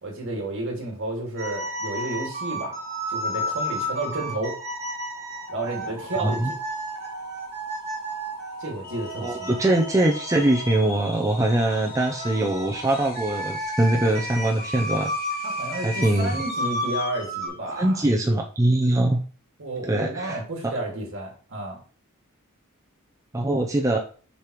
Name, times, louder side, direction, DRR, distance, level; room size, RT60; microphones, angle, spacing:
voice 1, 0.0-2.7 3.1-4.6 5.5-6.6 8.6-9.5 15.4-18.1 19.6-21.8, right 2 dB, 60° right, 0 dB, 2.1 m, -31 dB
sound 1, 1.4-10.9 11.7-17.5, right 1 dB, 30° right, 1.8 m, -32 dB
sound 2, 1.6-13.6, left 1 dB, 15° left, 1.6 m, -43 dB
voice 2, 6.2-6.5 9.2-15.1 15.8-16.4 17.8-19.2 19.9-20.4 23.3-24.0, right 1 dB, 15° right, 0 dB, 0.5 m, -22 dB
sound 3, 6.4-6.5 6.7-7.3 7.8-7.9 8.6-17.4, left 6 dB, 45° left, 0.7 m, -40 dB
6.9 x 4.9 x 3.0 m, 0.40 s
head